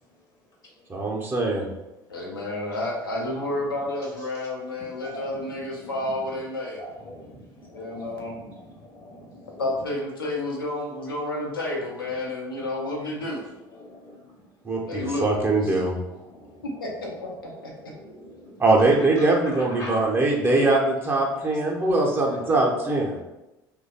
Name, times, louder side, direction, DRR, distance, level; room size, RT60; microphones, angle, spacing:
voice 1, 0.9-1.7 14.6-15.9 18.6-23.2, right 2 dB, 20° right, -2 dB, 0.7 m, -22 dB
voice 2, 2.1-6.8 7.7-8.4 9.6-13.4 14.9-15.4 15.6-15.7 16.8-17.9, left 1 dB, 75° left, -1 dB, 0.8 m, -30 dB
voice 3, 5.0-5.9 6.8-9.6 13.7-14.2 16.2-16.6 17.8-18.6 19.0-20.1 21.3-21.5, left 1 dB, 35° left, -2 dB, 0.9 m, -42 dB
3.1 x 2.2 x 4.1 m, 0.97 s
figure-of-eight pair, 65°, 12 cm